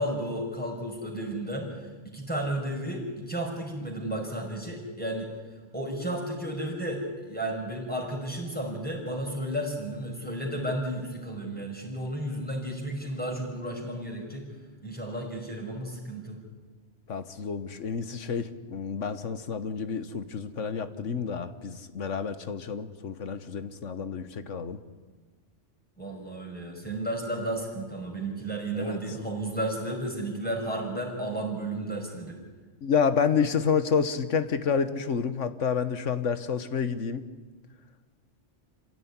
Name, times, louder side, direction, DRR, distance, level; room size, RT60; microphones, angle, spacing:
voice 1, 0.0-1.7 2.1-5.3 5.7-14.5 14.8-16.4 26.0-32.4, right 1 dB, 5° left, -1 dB, 5.4 m, -33 dB
voice 2, 17.1-24.8 28.7-29.0 32.8-37.2, left 6 dB, 90° left, 11 dB, 1.6 m, -29 dB
26.5 x 16.5 x 9.7 m, 1.4 s
omnidirectional pair, 1.2 m